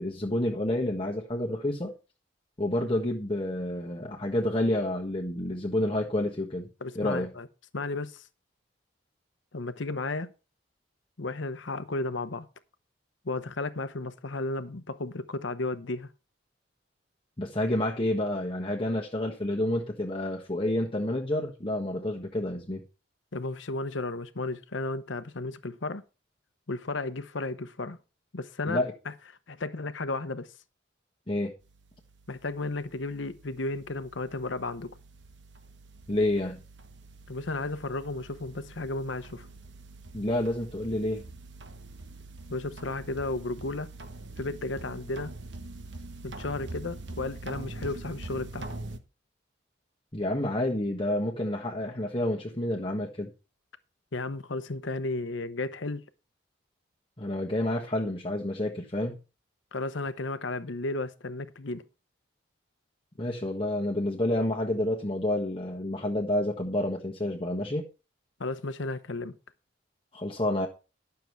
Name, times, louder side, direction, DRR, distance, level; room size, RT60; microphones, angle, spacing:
voice 1, 0.0-1.9 2.6-6.7 6.9-7.3 17.4-22.8 28.7-28.9 31.3-31.5 36.1-36.6 40.1-41.2 50.1-53.3 57.2-59.2 63.2-67.8 70.1-70.7, left 1 dB, 25° left, 1.4 m, -29 dB
voice 2, 6.8-7.5 7.7-8.2 9.5-10.3 11.2-12.5 13.2-16.1 23.3-26.0 26.7-28.0 28.3-28.8 29.5-30.5 32.3-35.0 37.3-39.5 42.5-43.9 44.4-45.3 46.2-48.7 54.1-56.0 59.7-61.8 68.4-69.4, left 2 dB, 80° left, 0.9 m, -33 dB
sound 1, 31.6-49.0, right 2 dB, 70° right, 1.2 m, -44 dB
11.5 x 6.9 x 4.6 m
head